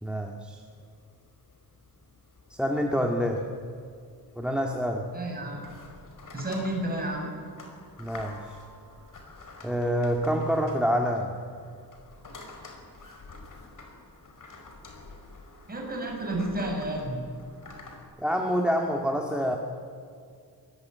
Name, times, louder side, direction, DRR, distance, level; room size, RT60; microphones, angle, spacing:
voice 1, 0.0-0.6 2.6-3.4 4.4-5.0 8.0-8.4 9.6-11.3 18.2-19.6, equal, ahead, 2 dB, 2.0 m, -27 dB
sound 1, 0.6-18.0, left 3 dB, 50° left, 5.2 m, -49 dB
voice 2, 5.1-5.6 6.3-7.3 15.7-17.3, right 1 dB, 25° right, 0 dB, 7.4 m, -31 dB
25.0 x 21.0 x 9.7 m, 2.2 s
wide cardioid pair, 140°, 39 cm